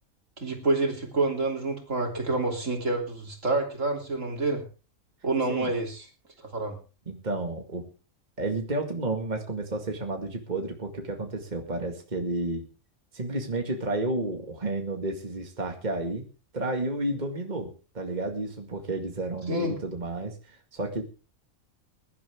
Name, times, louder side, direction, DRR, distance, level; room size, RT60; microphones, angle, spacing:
voice 1, 0.4-4.6 5.2-6.1 6.5-6.8 19.5-19.8, right 2 dB, 65° right, 3 dB, 3.5 m, -28 dB
voice 2, 7.1-7.9 8.4-12.6 13.1-16.3 16.5-21.0, right 2 dB, 35° right, 3 dB, 2.2 m, -31 dB
22.0 x 11.5 x 3.6 m, 0.34 s
omnidirectional pair, 1.4 m